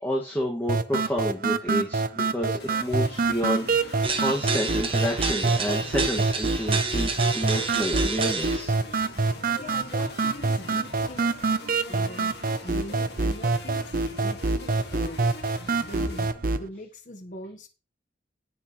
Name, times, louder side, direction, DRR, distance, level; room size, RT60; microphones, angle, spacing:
voice 1, 0.0-8.8, equal, 10° left, 2.0 m, -30 dB
sound 1, 0.7-16.7, right 3 dB, 50° right, 0.7 m, -26 dB
sound 2, 2.6-16.3, left 2 dB, 60° left, 2.1 m, -43 dB
sound 3, 4.0-8.6, right 4 dB, 30° right, 1.5 m, -30 dB
voice 2, 9.6-11.4 11.8-15.3 15.8-17.7, equal, 45° left, 1.4 m, -41 dB
18.5 x 6.4 x 3.2 m
head